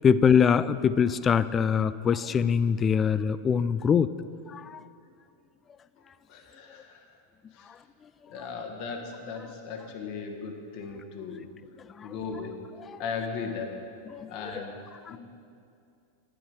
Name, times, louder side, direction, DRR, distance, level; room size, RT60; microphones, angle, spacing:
voice 1, 0.0-4.1 4.5-4.8 12.0-12.1 12.8-13.0 14.1-14.6 15.1-15.2, left 7 dB, 20° left, 16 dB, 0.3 m, -23 dB
voice 2, 6.3-7.0 7.5-7.7 8.3-11.5 12.0-12.6 13.0-13.8 14.3-14.8 15.1-15.2, left 5 dB, 45° left, 3 dB, 1.4 m, -37 dB
10.5 x 10.0 x 4.8 m, 2.5 s
figure-of-eight pair, 90°, 0 cm